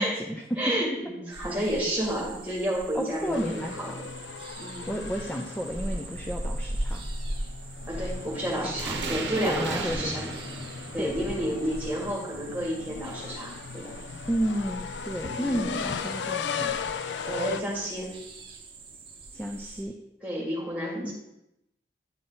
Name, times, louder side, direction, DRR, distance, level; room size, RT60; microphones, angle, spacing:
voice 1, 0.0-0.6 2.9-4.0 4.9-7.0 8.6-8.7 9.4-10.3 11.0-11.6 14.3-16.8 19.3-20.0 21.0-21.1, equal, 10° left, 1 dB, 0.4 m, -32 dB
voice 2, 0.6-3.9 4.6-4.9 7.9-10.2 10.9-13.9 15.4-15.6 17.0-18.1 20.2-21.1, right 1 dB, 10° right, -3 dB, 1.7 m, -31 dB
sound 1, 1.3-19.8, right 1 dB, 30° right, 0.8 m, -40 dB
sound 2, 3.3-17.6, left 6 dB, 75° left, 0.3 m, -37 dB
sound 3, 8.8-13.9, right 3 dB, 75° right, 0.8 m, -37 dB
10.0 x 3.8 x 3.9 m, 0.87 s
head